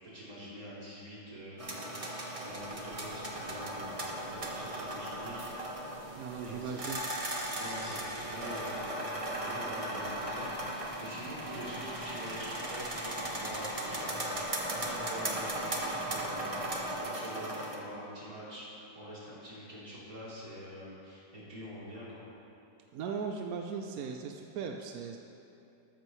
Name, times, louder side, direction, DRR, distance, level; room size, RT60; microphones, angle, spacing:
voice 1, 0.1-5.4 6.4-6.8 7.6-22.2, equal, 50° right, -9 dB, 3.9 m, -45 dB
sound 1, 1.6-17.8, right 1 dB, 25° right, 1.0 m, -37 dB
sound 2, 2.7-17.0, equal, 10° left, 0.7 m, -47 dB
voice 2, 6.2-7.0 22.9-25.2, right 6 dB, 65° right, 3 dB, 1.0 m, -38 dB
13.5 x 13.5 x 3.2 m, 2.8 s
omnidirectional pair, 1.9 m